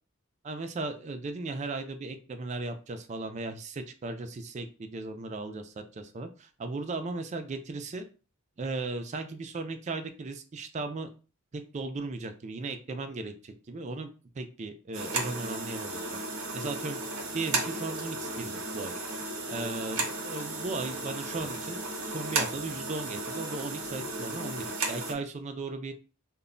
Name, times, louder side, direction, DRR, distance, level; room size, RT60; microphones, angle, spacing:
voice 1, 0.4-8.1 8.6-11.1 11.5-14.1 14.4-16.0 16.5-18.9 19.5-21.8 22.1-25.9, right 3 dB, 35° right, 7 dB, 0.3 m, -36 dB
sound 1, 14.9-25.1, right 3 dB, 90° right, 0.7 m, -34 dB
2.2 x 2.1 x 3.7 m, 0.35 s
head